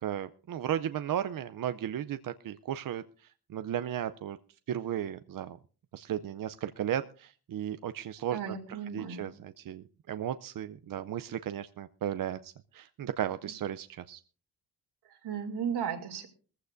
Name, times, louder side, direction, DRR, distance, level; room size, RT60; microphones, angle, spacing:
voice 1, 0.0-4.4 4.7-5.6 5.9-8.6 8.9-14.2, right 10 dB, 55° right, 11 dB, 0.6 m, -35 dB
voice 2, 8.3-9.3 15.1-16.3, right 7 dB, 75° right, 4 dB, 2.7 m, -35 dB
20.0 x 15.0 x 2.5 m, 0.38 s
cardioid pair, 115°, 40 cm